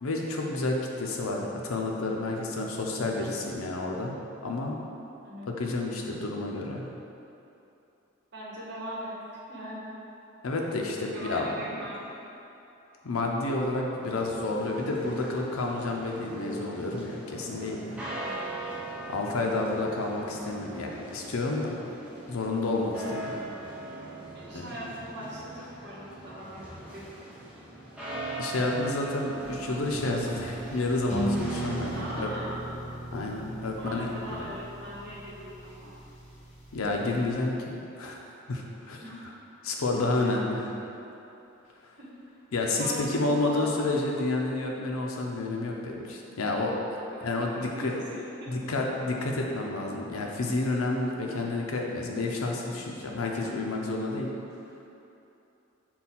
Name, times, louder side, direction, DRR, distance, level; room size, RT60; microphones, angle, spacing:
voice 1, 0.0-4.2 4.4-4.8 5.5-6.9 10.4-11.9 13.0-18.1 19.1-21.8 22.3-23.4 24.5-24.7 28.4-32.3 33.1-34.5 36.7-38.2 38.5-39.0 39.6-40.7 42.5-48.0 48.5-54.3, left 2 dB, 85° left, 0 dB, 0.6 m, -30 dB
voice 2, 5.2-5.5 8.3-9.1 9.5-9.9 11.1-12.0 18.2-18.7 19.4-19.8 24.3-27.0 31.9-32.6 33.8-36.0 39.0-39.1 40.2-40.3 42.0-42.1 42.8-44.0 47.1-48.5, equal, 50° right, -6 dB, 1.0 m, -40 dB
sound 1, 14.0-32.2, right 2 dB, 5° right, 0.5 m, -41 dB
sound 2, 29.4-37.5, right 1 dB, 35° left, 0.8 m, -37 dB
5.5 x 2.3 x 4.1 m, 2.9 s
head